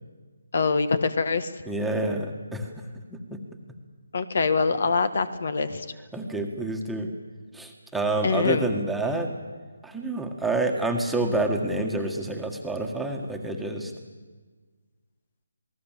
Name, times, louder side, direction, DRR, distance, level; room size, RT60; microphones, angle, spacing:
voice 1, 0.5-1.5 4.1-5.9 8.2-8.7, left 4 dB, 55° left, 12 dB, 1.7 m, -24 dB
voice 2, 1.7-3.4 6.1-7.1 7.5-9.3 9.8-13.9, right 2 dB, ahead, 0 dB, 1.8 m, -28 dB
28.0 x 19.0 x 7.6 m, 1.4 s
figure-of-eight pair, 160°, 0 cm